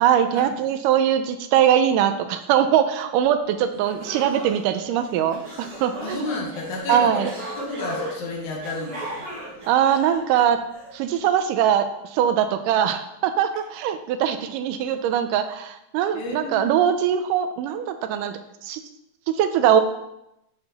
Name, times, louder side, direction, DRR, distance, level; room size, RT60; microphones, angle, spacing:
voice 1, 0.0-6.3 6.9-7.3 9.7-10.6 10.9-18.8 19.4-19.8, right 9 dB, 80° right, 9 dB, 1.9 m, -21 dB
sound 1, 3.4-3.5 3.8-10.9, right 1 dB, 40° right, 1.6 m, -37 dB
voice 2, 6.0-7.3 7.6-9.3 16.1-16.7, left 2 dB, 65° left, -1 dB, 2.6 m, -31 dB
8.8 x 4.3 x 4.1 m, 0.84 s
omnidirectional pair, 4.1 m